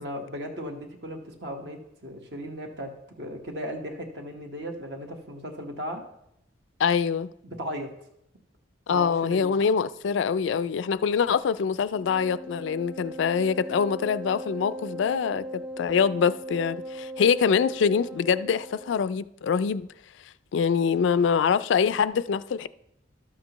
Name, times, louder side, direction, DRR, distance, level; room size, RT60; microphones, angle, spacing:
voice 1, 0.0-6.0 7.4-7.9 8.9-9.5, equal, 60° right, 1.2 m, -36 dB
voice 2, 6.8-7.3 8.9-19.9 20.5-22.7, left 6 dB, 75° left, 0.3 m, -24 dB
Wind instrument woodwind instrument, 11.9-19.0, right 1 dB, 5° right, 0.3 m, -39 dB
12.5 x 7.4 x 3.0 m
head